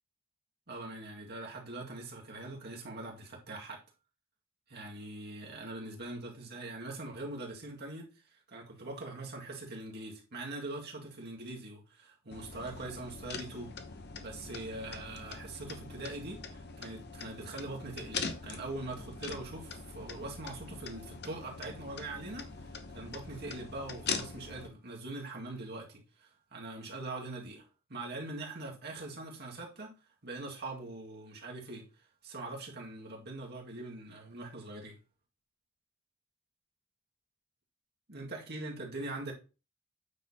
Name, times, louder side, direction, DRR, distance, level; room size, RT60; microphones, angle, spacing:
voice 1, 0.7-3.8 4.7-8.1 8.3-13.7 14.2-29.9 30.2-31.8 32.2-35.0 38.1-39.3, right 2 dB, 50° right, 2.1 m, -42 dB
sound 1, 12.3-24.7, left 5 dB, 50° left, 0.9 m, -42 dB
9.1 x 6.5 x 2.9 m
head